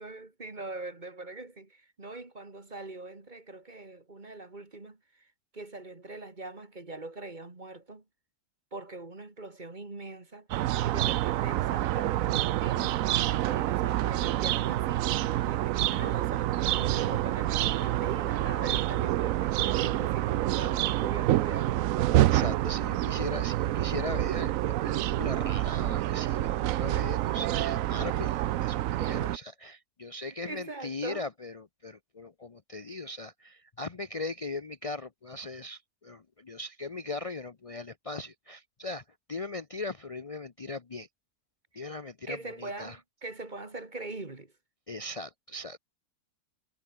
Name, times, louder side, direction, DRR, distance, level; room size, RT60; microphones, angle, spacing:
voice 1, 0.0-5.3 5.5-8.0 8.7-10.5 10.8-21.9 29.0-29.3 30.1-31.3 41.7-41.8 42.3-44.5, right 2 dB, 25° right, 2.3 m, -42 dB
sound 1, 10.5-29.4, right 14 dB, 75° right, 0.8 m, -27 dB
voice 2, 22.3-39.0 39.3-41.1 41.8-43.0 44.9-45.8, left 2 dB, 50° left, 0.4 m, -39 dB
omnidirectional pair, 1.9 m